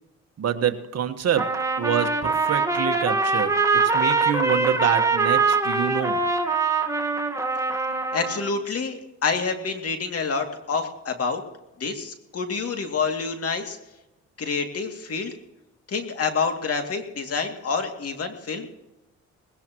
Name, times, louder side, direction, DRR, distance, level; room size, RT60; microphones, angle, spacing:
voice 1, 0.4-6.2, right 9 dB, 55° right, 8 dB, 1.5 m, -27 dB
Trumpet, 1.4-8.5, right 4 dB, 10° right, 1.6 m, -23 dB
voice 2, 8.1-11.4 11.8-13.8 14.4-15.3 15.9-18.7, left 5 dB, 50° left, 4 dB, 2.6 m, -27 dB
20.0 x 17.5 x 3.0 m, 0.94 s
cardioid pair, 90°, 30 cm